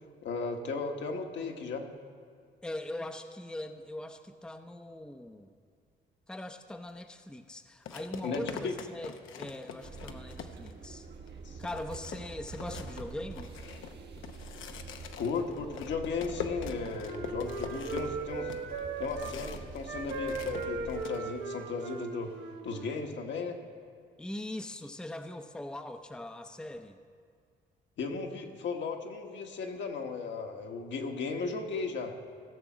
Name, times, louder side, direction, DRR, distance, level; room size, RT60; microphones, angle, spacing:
voice 1, 0.2-1.8 8.2-8.7 11.4-11.6 15.2-18.5 19.0-22.3 22.6-23.6 28.0-32.1, left 4 dB, 65° left, 3 dB, 1.3 m, -35 dB
voice 2, 2.6-5.5 6.3-11.1 11.6-13.6 24.2-27.0, left 1 dB, 5° left, 6 dB, 0.6 m, -41 dB
sound 1, 6.9-7.0 7.9-10.9 11.3-11.4 11.6-19.8 20.0-21.2, left 7 dB, 80° left, 0.8 m, -44 dB
sound 2, 9.8-21.1, right 4 dB, 55° right, 1.5 m, -46 dB
Wind instrument woodwind instrument, 16.2-19.4 19.8-23.0, right 3 dB, 80° right, 1.6 m, -38 dB
16.0 x 6.9 x 6.1 m, 2.2 s
cardioid pair, 90°, 20 cm